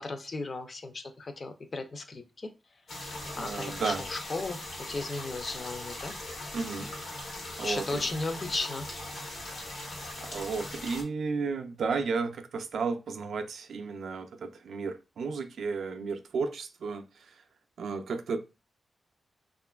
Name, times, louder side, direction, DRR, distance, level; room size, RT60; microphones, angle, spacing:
voice 1, 0.0-2.5 3.4-4.6 4.9-6.1 7.5-8.9, left 3 dB, 45° left, 0.4 m, -35 dB
sound 1, 2.9-11.0, left 1 dB, 70° left, 0.9 m, -40 dB
voice 2, 3.4-4.0 6.5-6.9 7.6-8.1 10.3-17.3 17.8-18.4, right 4 dB, 80° right, 0.3 m, -33 dB
2.9 x 2.4 x 2.2 m
wide cardioid pair, 105°, 0 cm